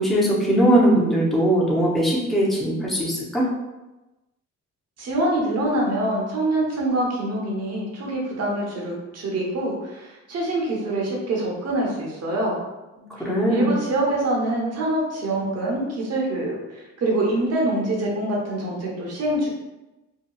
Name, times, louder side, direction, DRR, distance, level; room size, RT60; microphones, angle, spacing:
voice 1, 0.0-3.4 13.0-13.7, right 1 dB, ahead, -6 dB, 0.7 m, -20 dB
voice 2, 5.0-12.5 13.5-19.5, right 1 dB, 55° right, -2 dB, 0.9 m, -25 dB
2.8 x 2.3 x 2.3 m, 1.0 s
cardioid pair, 90°, 30 cm